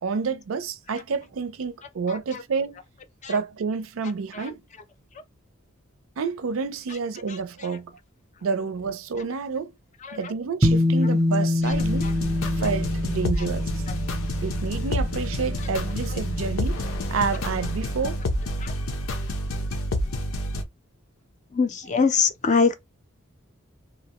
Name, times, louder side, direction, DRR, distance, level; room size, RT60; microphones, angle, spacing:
voice 1, 0.0-2.8 3.3-4.6 6.2-7.9 8.4-9.7 10.1-12.1 12.6-13.7 14.4-16.8 17.1-18.2, right 5 dB, 75° right, 0.4 m, -29 dB
sound 1, 10.6-17.2, left 2 dB, 15° right, 0.6 m, -26 dB
sound 2, 11.7-20.6, equal, 85° left, 0.6 m, -28 dB
voice 2, 21.5-22.7, left 5 dB, 35° left, 0.4 m, -22 dB
2.8 x 2.1 x 2.8 m
head